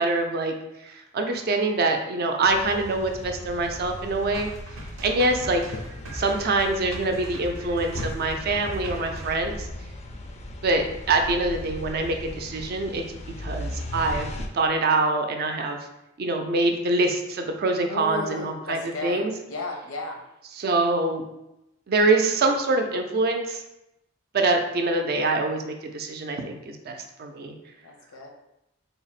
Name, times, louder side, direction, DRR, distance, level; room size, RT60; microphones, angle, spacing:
voice 1, 0.0-4.5 5.0-5.6 6.1-9.7 10.6-13.0 13.4-15.8 16.2-19.3 20.6-21.2 21.9-23.6 24.3-27.6, right 2 dB, 50° right, 4 dB, 0.4 m, -25 dB
sound 1, 2.5-14.5, left 1 dB, 35° left, 0.3 m, -37 dB
sound 2, 4.3-9.5, right 1 dB, 90° right, 0.6 m, -40 dB
voice 2, 17.9-20.2 27.8-28.3, left 2 dB, 90° left, 1 dB, 0.7 m, -34 dB
3.4 x 2.1 x 4.0 m, 0.87 s
head